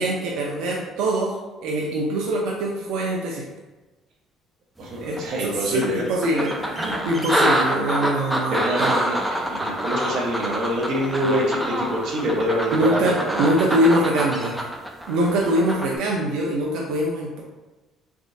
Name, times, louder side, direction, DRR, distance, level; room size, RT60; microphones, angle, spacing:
voice 1, 0.0-3.5 5.0-9.0 12.7-14.6 15.1-17.4, right 1 dB, 90° right, -1 dB, 0.5 m, -23 dB
voice 2, 4.8-6.0 8.5-13.4, equal, 55° right, -2 dB, 1.0 m, -25 dB
sound 1, 5.2-5.3 5.8-16.0, equal, 5° right, 0.4 m, -26 dB
3.9 x 3.5 x 2.7 m, 1.2 s
cardioid pair, 175°, 0 cm